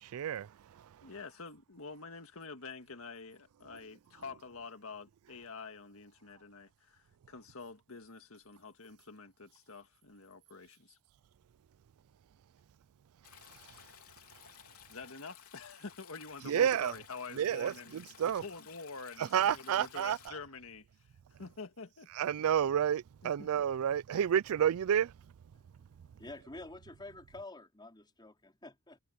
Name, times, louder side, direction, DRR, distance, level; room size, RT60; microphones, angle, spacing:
voice 1, 0.0-1.1 13.6-13.7 16.4-16.9 17.3-18.4 19.2-20.2 22.1-25.1, right 9 dB, 75° right, 0.3 m, -30 dB
voice 2, 1.0-11.0 14.9-18.0 18.4-21.1 21.4-22.1 23.2-23.5, left 4 dB, 70° left, 1.9 m, -47 dB
Stream, 13.2-20.3, left 9 dB, 90° left, 3.4 m, -56 dB
voice 3, 26.2-29.0, left 2 dB, 20° left, 4.6 m, -48 dB
head